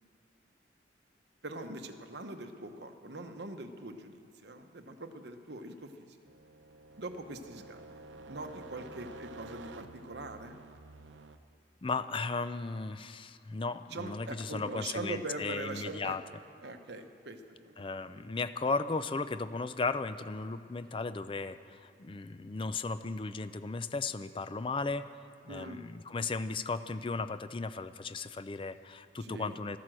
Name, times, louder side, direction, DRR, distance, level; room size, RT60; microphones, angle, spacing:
voice 1, 1.4-6.2 7.0-10.6 13.9-16.2 16.6-18.1 25.5-25.9 26.2-26.3 29.2-29.6, right 2 dB, 65° right, 6 dB, 1.0 m, -42 dB
sound 1, 6.3-11.4, right 2 dB, 85° right, 0.7 m, -50 dB
voice 2, 11.8-16.2 17.8-25.0 25.4-29.8, left 3 dB, 25° left, 12 dB, 0.4 m, -35 dB
12.5 x 12.5 x 7.6 m, 2.4 s
head